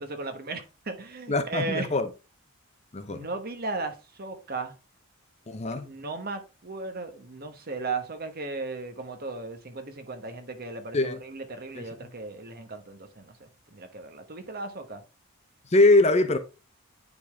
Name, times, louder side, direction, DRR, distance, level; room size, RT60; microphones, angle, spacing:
voice 1, 0.0-1.9 3.1-4.7 5.7-15.0, right 3 dB, 45° right, 1.2 m, -36 dB
voice 2, 1.3-2.1 2.9-3.3 5.5-5.9 10.9-11.2 11.7-11.8 15.7-16.4, left 2 dB, 30° left, 0.7 m, -22 dB
9.4 x 3.9 x 3.5 m
head